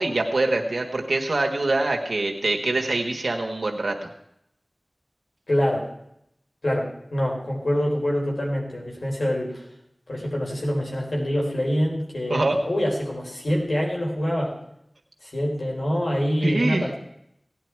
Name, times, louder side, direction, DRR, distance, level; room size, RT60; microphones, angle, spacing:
voice 1, 0.0-4.1 12.3-12.6 16.4-16.9, right 2 dB, 85° right, 2 dB, 1.3 m, -24 dB
voice 2, 5.5-5.9 6.6-9.6 10.1-14.5 15.2-17.0, equal, 80° left, -2 dB, 4.0 m, -25 dB
17.0 x 10.0 x 4.6 m, 0.75 s
wide cardioid pair, 55°, 0 cm